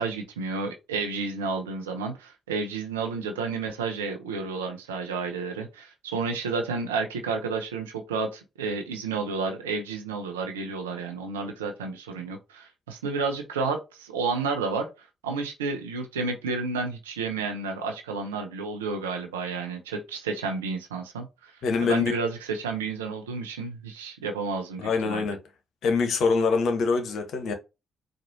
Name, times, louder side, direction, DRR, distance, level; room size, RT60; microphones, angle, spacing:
voice 1, 0.0-21.5 21.8-25.3, right 4 dB, 85° right, 0.6 m, -31 dB
voice 2, 21.6-22.2 24.8-25.4 25.8-27.5, left 4 dB, 60° left, 0.9 m, -24 dB
4.3 x 2.5 x 2.7 m
figure-of-eight pair, 40°, 0 cm